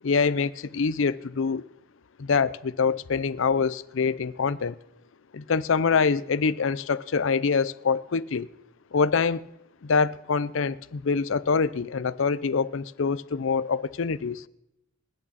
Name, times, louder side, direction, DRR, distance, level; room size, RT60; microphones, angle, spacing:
voice 1, 0.0-1.6 2.2-4.8 5.3-8.5 8.9-9.5 9.8-14.4, left 5 dB, 60° left, 0.5 m, -25 dB
26.0 x 8.8 x 4.1 m
head